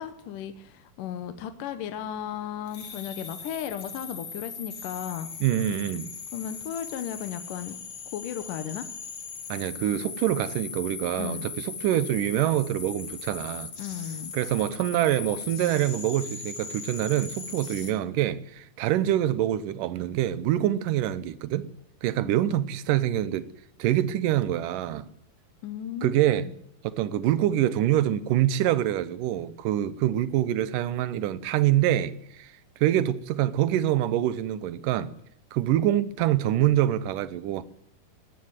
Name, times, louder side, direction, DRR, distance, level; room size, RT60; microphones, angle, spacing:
voice 1, 0.0-5.3 6.3-7.8 8.1-8.9 11.2-11.5 13.8-14.3 22.2-22.4 25.6-26.5, left 9 dB, 70° left, 2.5 m, -35 dB
sound 1, 2.7-17.9, left 5 dB, 45° left, 3.2 m, -39 dB
voice 2, 5.4-6.1 9.5-13.7 14.3-21.7 22.0-23.5 23.8-25.1 26.0-26.5 26.8-32.5 32.8-35.1 35.5-37.6, right 12 dB, 70° right, 2.5 m, -25 dB
20.0 x 15.0 x 9.7 m
omnidirectional pair, 4.1 m